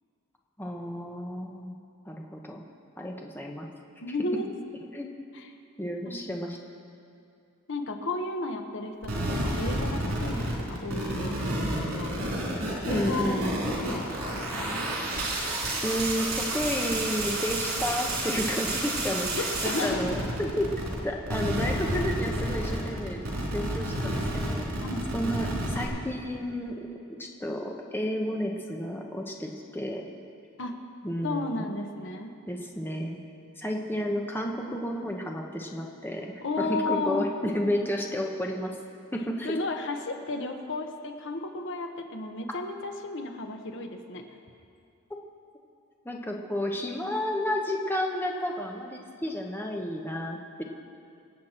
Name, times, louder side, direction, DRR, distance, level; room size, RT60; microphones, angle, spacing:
voice 1, 0.6-1.8 2.0-2.6 3.0-3.7 4.9-5.1 5.8-6.6 12.8-13.5 15.8-20.7 21.0-23.2 23.5-24.7 25.1-26.8 27.2-30.0 31.0-31.7 32.5-33.2 33.6-36.3 36.6-38.7 39.1-39.6 46.0-50.6, equal, 10° left, 1 dB, 0.9 m, -31 dB
voice 2, 4.0-4.5 5.3-5.5 6.0-6.2 7.7-12.2 12.8-14.4 19.3-20.0 24.8-25.1 30.6-30.8 31.2-32.3 36.4-37.3 39.4-44.2, left 2 dB, 60° left, 4 dB, 1.1 m, -33 dB
sound 1, 9.0-21.0 21.3-25.9, right 1 dB, 90° right, 3.4 m, -30 dB
25.5 x 8.4 x 4.4 m, 2.5 s
head